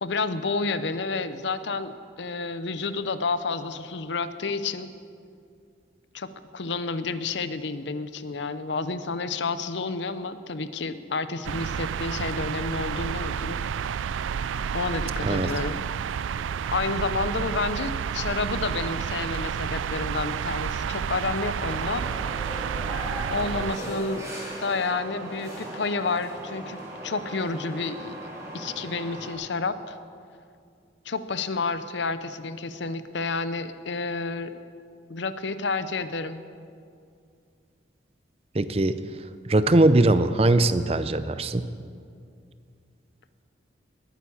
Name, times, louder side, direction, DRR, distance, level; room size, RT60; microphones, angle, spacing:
voice 1, 0.0-4.9 6.1-13.6 14.7-15.8 16.7-22.1 23.3-24.3 24.6-28.1 28.5-30.0 31.1-34.6 35.1-36.4, left 3 dB, 70° left, 12 dB, 0.7 m, -30 dB
sound 1, 11.4-23.8, right 7 dB, 90° right, 0.4 m, -30 dB
sound 2, 21.5-29.3, right 1 dB, 15° right, 3.7 m, -38 dB
voice 2, 38.5-39.0 39.5-41.7, right 2 dB, 30° right, 13 dB, 0.5 m, -21 dB
20.5 x 9.3 x 7.0 m, 2.4 s
head